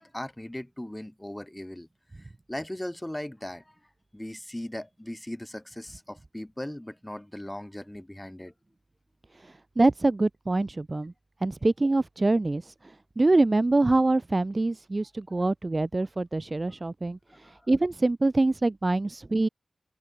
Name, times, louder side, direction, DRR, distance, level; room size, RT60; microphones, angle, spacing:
voice 1, 0.0-1.9 2.2-3.7 4.1-8.5 15.3-15.4 17.4-17.5, left 1 dB, 10° left, 1.4 m, -38 dB
voice 2, 9.3-11.1 11.4-19.5, right 2 dB, 25° right, 0.5 m, -25 dB
wide cardioid pair, 125°, 0 cm